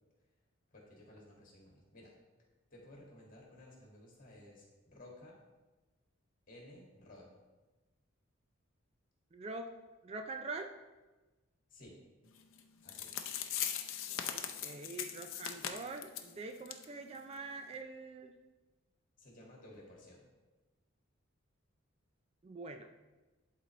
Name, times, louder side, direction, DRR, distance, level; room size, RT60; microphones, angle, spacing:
voice 1, 0.7-2.1 2.7-5.4 6.5-7.4 11.7-12.0 12.8-13.1 19.2-20.2, left 1 dB, 40° left, -2 dB, 1.9 m, -56 dB
voice 2, 9.3-9.7 10.0-10.7 14.3-18.3 22.4-22.9, right 3 dB, 30° right, 6 dB, 0.3 m, -44 dB
sound 1, 12.6-12.7 12.9-16.3 16.7-16.8 17.1-17.2 17.7-17.8, left 10 dB, 70° left, 0.6 m, -39 dB
11.5 x 4.0 x 3.1 m, 1.2 s
head